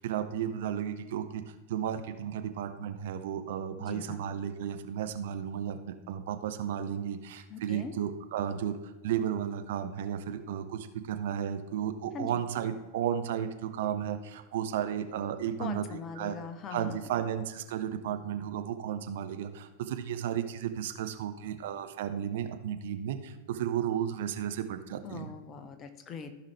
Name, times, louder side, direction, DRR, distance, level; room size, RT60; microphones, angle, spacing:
voice 1, 0.0-5.8 6.1-16.4 16.7-25.3, right 9 dB, 55° right, 8 dB, 0.7 m, -34 dB
voice 2, 3.8-4.2 7.5-7.9 12.1-12.4 15.6-17.1 25.0-26.3, left 5 dB, 30° left, 8 dB, 0.9 m, -41 dB
14.5 x 5.8 x 3.2 m, 1.2 s
figure-of-eight pair, 90°, 0 cm